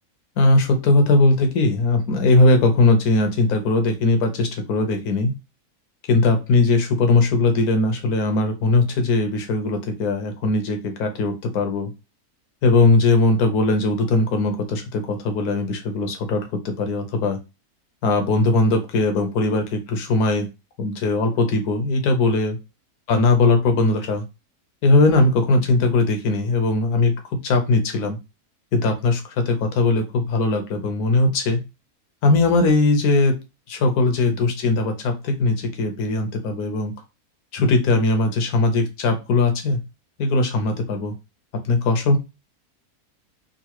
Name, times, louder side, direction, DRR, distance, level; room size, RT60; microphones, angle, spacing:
voice 1, 0.4-5.3 6.1-11.9 12.6-17.4 18.0-20.5 20.8-22.6 23.1-24.3 24.8-27.1 27.4-28.2 28.7-31.6 32.2-33.3 33.7-36.9 37.5-39.8 40.2-41.1 41.6-42.2, left 2 dB, 75° left, 5 dB, 1.3 m, -19 dB
3.8 x 2.6 x 2.9 m, 0.26 s
omnidirectional pair, 1.6 m